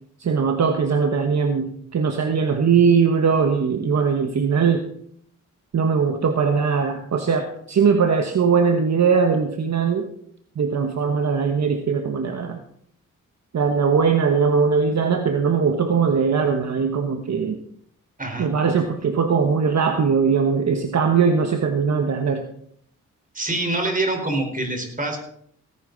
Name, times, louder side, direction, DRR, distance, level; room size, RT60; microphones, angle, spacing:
voice 1, 0.2-4.9 5.7-10.1 10.6-12.6 13.5-17.6 18.4-22.5, right 5 dB, 55° right, 5 dB, 1.3 m, -20 dB
voice 2, 23.3-25.2, right 2 dB, 25° right, 3 dB, 4.5 m, -25 dB
17.5 x 10.5 x 4.0 m, 0.66 s
cardioid pair, 70°, 32 cm